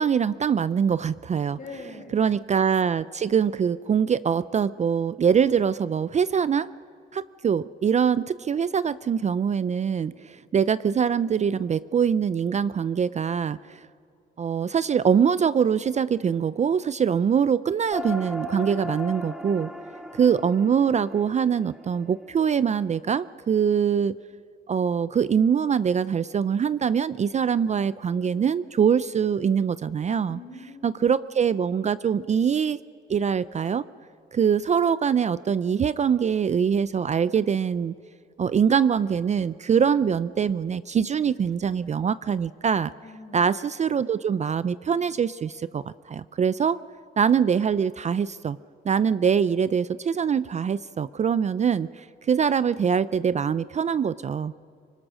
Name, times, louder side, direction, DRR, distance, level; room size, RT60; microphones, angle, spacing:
voice 1, 0.0-1.6 2.1-6.7 7.1-13.9 14.4-19.7 20.1-24.2 24.7-30.4 30.8-32.8 33.1-33.8 34.3-38.0 38.4-42.9 43.3-46.8 47.2-48.6 48.8-54.5, right 7 dB, 35° right, 16 dB, 0.4 m, -23 dB
voice 2, 1.5-2.2 30.3-31.1 43.0-43.4, left 3 dB, 40° left, 1 dB, 5.9 m, -43 dB
sound 1, 17.9-22.7, left 1 dB, 5° right, 1.4 m, -37 dB
24.5 x 19.5 x 6.3 m, 2.3 s
cardioid pair, 90°, 20 cm